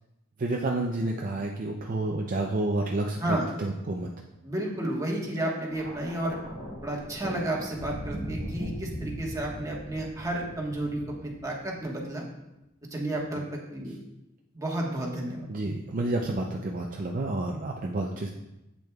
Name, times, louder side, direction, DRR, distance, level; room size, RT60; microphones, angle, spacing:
voice 1, 0.4-4.1 15.5-18.3, right 2 dB, 40° right, 0 dB, 0.5 m, -30 dB
voice 2, 4.4-6.4 6.8-12.3 12.9-14.0 14.5-15.4, right 1 dB, 15° right, -2 dB, 1.3 m, -32 dB
Thunder, 5.7-12.0 13.0-13.3, equal, 55° left, 2.6 m, -39 dB
8.4 x 6.3 x 2.3 m, 0.95 s
head